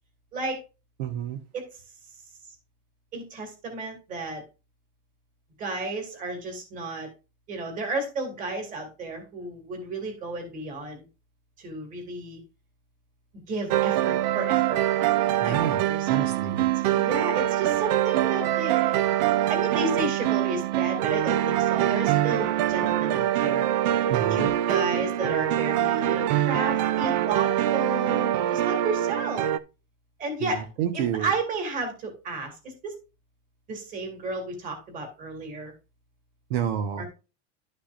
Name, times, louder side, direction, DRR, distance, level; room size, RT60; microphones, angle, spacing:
voice 1, 0.3-0.6 1.5-1.7 3.1-4.4 5.6-7.1 7.5-11.0 11.6-12.4 13.5-14.8 15.4-15.6 15.8-16.3 16.9-19.1 19.5-23.7 24.0-29.5 30.2-30.7 30.9-33.0 33.7-35.7 37.0-37.1, right 3 dB, 25° right, 3 dB, 2.4 m, -32 dB
voice 2, 1.0-1.4 15.4-16.6 24.1-24.5 30.4-31.3 36.5-37.0, right 9 dB, 65° right, 5 dB, 1.3 m, -29 dB
sound 1, 13.7-29.6, right 12 dB, 40° right, 0.4 m, -24 dB
11.5 x 5.9 x 2.6 m, 0.30 s
supercardioid pair, 175°, 34 cm